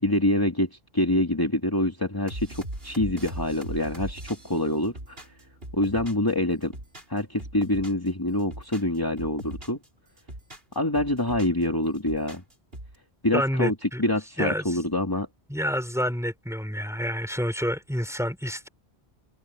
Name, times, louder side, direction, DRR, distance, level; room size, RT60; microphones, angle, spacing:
voice 1, 0.0-5.2 5.7-6.7 7.1-9.8 10.7-12.4 13.2-13.7 14.0-15.3, left 1 dB, 20° left, 2.6 m, -26 dB
sound 1, 2.3-6.3 6.6-8.1 8.4-9.9 10.2-11.6 11.9-13.0, right 1 dB, 65° right, 5.0 m, -39 dB
voice 2, 13.3-14.0 14.4-14.8 15.5-18.7, equal, 5° right, 4.7 m, -28 dB
omnidirectional pair, 1.1 m